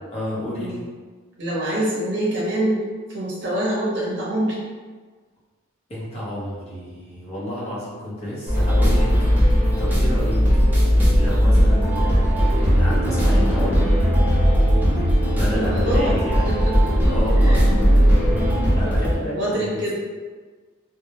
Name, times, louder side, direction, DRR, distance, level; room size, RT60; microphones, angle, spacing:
voice 1, 0.1-0.8 5.9-10.6 11.1-13.9 15.3-16.5 17.0-17.9 18.8-19.9, equal, 30° left, -8 dB, 0.7 m, -31 dB
voice 2, 1.4-2.8 3.1-4.6 15.5-16.7 17.4-17.9 18.6-18.9 19.3-19.9, right 1 dB, 60° right, -6 dB, 0.7 m, -25 dB
sound 1, 8.5-19.1, equal, 10° right, 0.5 m, -18 dB
2.2 x 2.0 x 2.8 m, 1.4 s
head